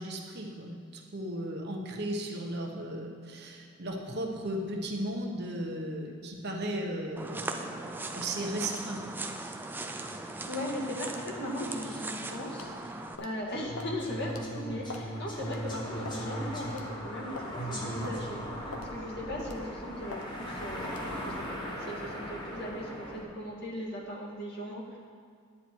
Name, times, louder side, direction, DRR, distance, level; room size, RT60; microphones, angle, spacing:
voice 1, 0.0-7.8 8.1-9.0, right 1 dB, 50° right, 1 dB, 1.2 m, -36 dB
sound 1, 7.2-13.2, right 2 dB, 10° right, 0.4 m, -39 dB
voice 2, 10.1-20.9 21.2-25.0, left 1 dB, 50° left, -3 dB, 1.9 m, -38 dB
sound 2, 12.6-12.8 13.2-13.4 13.8-14.0 14.3-14.4 14.9-15.1 15.4-15.6 16.1-16.3 16.7-16.9 17.4-17.5 18.0-18.2 18.7-18.9 19.4-19.6 20.1-20.3 20.8-21.1, left 3 dB, 75° left, 1.0 m, -43 dB
sound 3, 13.4-23.2, equal, 20° left, 1.4 m, -38 dB
10.0 x 9.8 x 4.6 m, 2.1 s
head